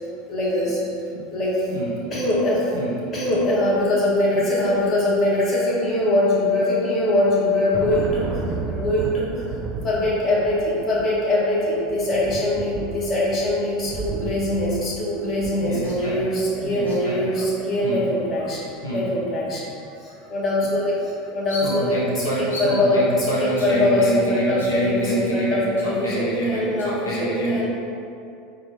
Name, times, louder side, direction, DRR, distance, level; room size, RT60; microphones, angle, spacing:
voice 1, 0.3-0.8 1.3-1.7 2.1-2.7 3.1-9.5 9.8-19.7 20.0-27.7, left 1 dB, 35° left, -6 dB, 1.1 m, -22 dB
voice 2, 1.7-2.2 2.7-3.0 15.6-16.2 16.6-17.2 17.8-18.1 18.8-19.1 19.9-20.3 21.5-27.7, right 1 dB, 85° left, -7 dB, 0.5 m, -27 dB
Thunder, 7.2-16.6, right 3 dB, 35° right, 0.4 m, -33 dB
4.2 x 2.3 x 3.1 m, 2.5 s
figure-of-eight pair, 75°, 0 cm